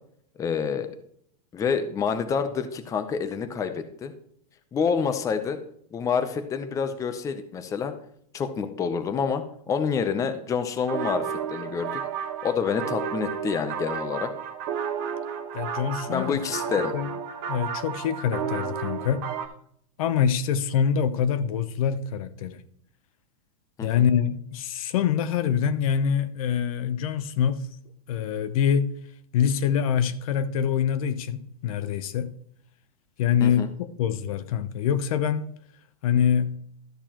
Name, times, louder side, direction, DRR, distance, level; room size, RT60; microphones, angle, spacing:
voice 1, 0.4-0.9 1.5-4.1 4.7-5.6 5.9-7.9 8.3-12.0 12.4-14.3 16.1-16.9 23.8-24.0 33.4-33.7, left 6 dB, 15° left, 0.6 m, -27 dB
sound 1, 10.8-19.5, right 7 dB, 45° right, 1.2 m, -32 dB
voice 2, 15.5-16.4 16.7-17.1 17.5-19.2 20.0-22.6 23.8-27.6 28.1-28.9 29.3-32.3 33.2-35.4 36.0-36.6, left 8 dB, 60° left, 0.8 m, -25 dB
12.5 x 6.6 x 3.0 m
hypercardioid pair, 140°, 20 cm